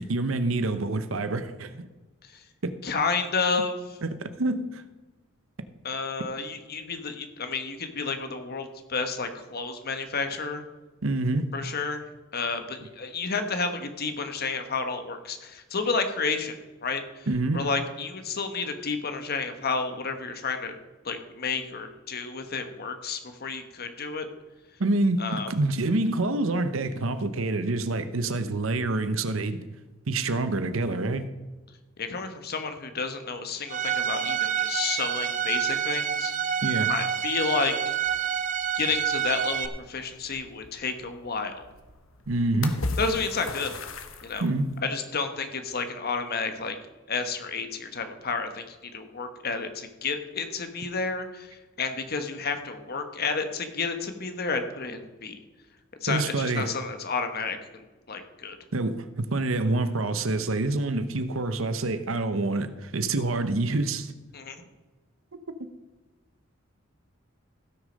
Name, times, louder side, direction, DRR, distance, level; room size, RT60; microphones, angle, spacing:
voice 1, 0.0-1.9 2.6-2.8 4.0-4.8 11.0-11.5 17.3-17.6 24.8-29.6 30.1-31.3 36.6-36.9 42.3-42.8 44.4-44.7 56.1-56.7 58.7-64.1 65.6-65.7, right 2 dB, 90° right, 0.9 m, -27 dB
voice 2, 2.8-3.8 5.8-10.6 11.5-12.0 12.3-16.5 16.8-17.3 17.5-20.7 21.0-24.2 25.2-25.5 32.0-36.3 36.9-37.9 38.7-41.7 43.0-43.7 44.2-44.4 44.8-46.8 47.1-55.4 56.0-58.6 64.3-64.6, left 4 dB, 50° left, 1.3 m, -31 dB
Bowed string instrument, 33.7-39.7, right 8 dB, 40° right, 0.7 m, -28 dB
sound 1, 38.1-44.8, left 3 dB, 85° left, 1.2 m, -39 dB
16.0 x 6.5 x 5.2 m
head